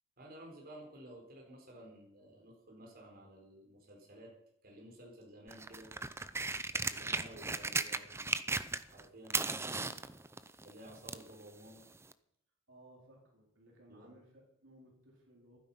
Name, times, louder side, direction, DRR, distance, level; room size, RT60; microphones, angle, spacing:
voice 1, 0.2-4.3 4.6-5.9 6.7-8.5 8.8-10.0 10.6-11.9 13.9-14.1, right 1 dB, 45° right, -1 dB, 4.3 m, -54 dB
sound 1, 5.5-9.0 9.3-11.3 12.1-12.2, right 3 dB, 15° right, 0.6 m, -36 dB
voice 2, 12.7-15.6, right 1 dB, 65° right, -1 dB, 4.1 m, -60 dB
15.0 x 12.5 x 5.7 m, 0.75 s
head